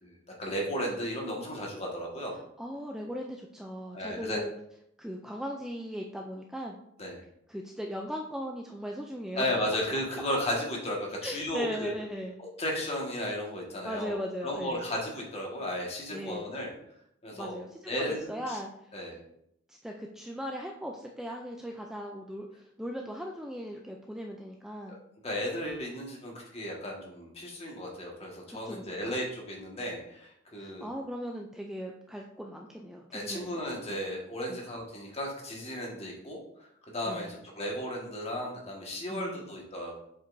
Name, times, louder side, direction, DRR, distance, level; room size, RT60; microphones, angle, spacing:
voice 1, 0.0-2.4 3.9-4.4 7.0-7.2 9.3-11.9 12.6-16.8 17.2-17.6 17.9-18.6 18.9-19.2 25.2-30.9 33.1-36.4 36.9-40.0, left 1 dB, 30° left, -1 dB, 1.6 m, -34 dB
voice 2, 2.6-4.5 5.0-6.8 7.5-9.5 11.2-12.4 13.8-14.9 16.1-16.5 17.3-18.7 19.7-25.0 28.5-29.2 30.6-34.0 34.5-34.6 37.1-37.3 39.1-39.4, equal, 5° right, 0 dB, 0.4 m, -38 dB
7.4 x 5.3 x 2.6 m, 0.74 s
head